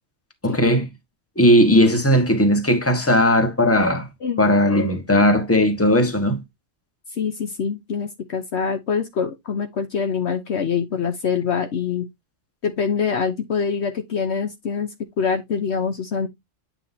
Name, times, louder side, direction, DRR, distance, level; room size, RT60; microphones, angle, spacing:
voice 1, 0.4-0.9 1.4-4.1 4.4-6.4, equal, 10° left, 1.4 m, -17 dB
voice 2, 7.1-12.1 12.6-16.3, left 6 dB, 60° left, 1.1 m, -25 dB
8.9 x 5.8 x 2.7 m
omnidirectional pair, 1.3 m